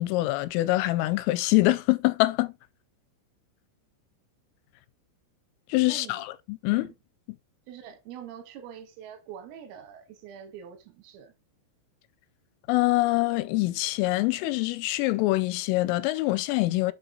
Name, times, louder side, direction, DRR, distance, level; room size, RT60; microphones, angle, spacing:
voice 1, 0.0-2.5 5.7-6.9 12.7-16.9, left 19 dB, 85° left, 3.1 m, -24 dB
voice 2, 5.9-6.2 6.7-6.9 7.7-11.3, right 9 dB, 90° right, 4.0 m, -44 dB
8.0 x 4.1 x 3.9 m
omnidirectional pair, 5.8 m